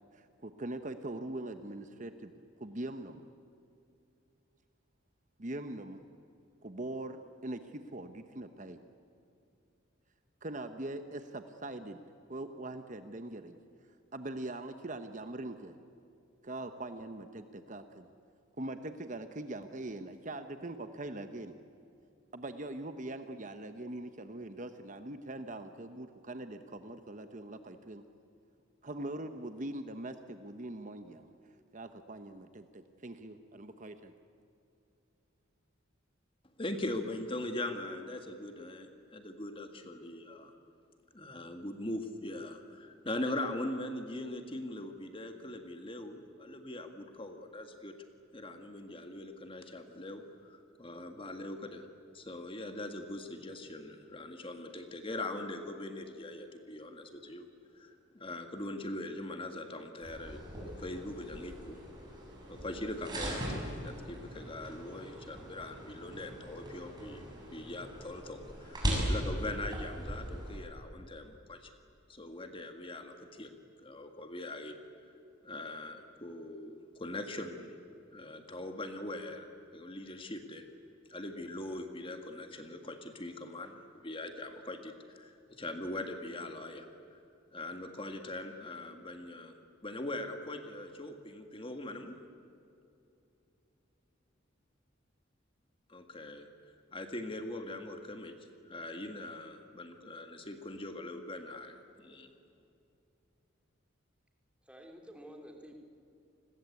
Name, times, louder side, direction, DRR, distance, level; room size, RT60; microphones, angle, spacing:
voice 1, 0.1-2.3 2.6-3.2 5.4-6.0 6.6-8.8 10.4-12.0 12.3-13.6 14.1-15.7 16.4-18.1 18.6-21.5 22.3-28.0 28.8-31.3 31.7-34.1, right 2 dB, 40° right, 8 dB, 1.0 m, -42 dB
voice 2, 36.6-40.5 41.1-47.9 48.3-51.9 52.1-57.5 57.7-60.4 60.8-61.8 62.4-71.7 72.1-73.5 73.8-74.8 75.4-77.7 78.1-80.6 81.1-87.2 87.5-89.6 89.8-92.2 95.9-96.5 96.9-98.3 98.6-102.3, left 1 dB, 25° left, 6 dB, 1.7 m, -41 dB
sound 1, 60.0-70.6, equal, 20° right, 7.5 m, -39 dB
voice 3, 104.6-105.8, equal, 5° right, 2 dB, 3.1 m, -50 dB
29.5 x 21.5 x 8.4 m, 2.7 s
head